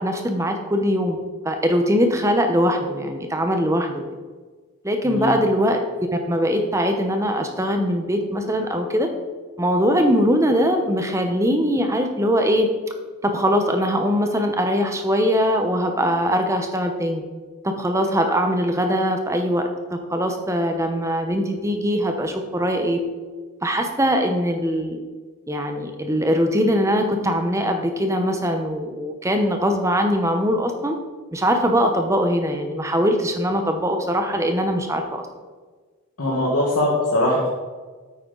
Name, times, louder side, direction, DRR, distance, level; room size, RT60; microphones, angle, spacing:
voice 1, 0.0-4.0 4.8-5.8 6.1-9.1 9.6-12.7 13.2-17.2 17.6-23.0 23.6-25.0 25.5-31.0 31.3-35.3, equal, 15° right, 5 dB, 0.9 m, -21 dB
voice 2, 5.0-5.4 36.2-37.5, left 1 dB, 85° left, -4 dB, 1.6 m, -21 dB
8.7 x 8.5 x 4.0 m, 1.4 s
head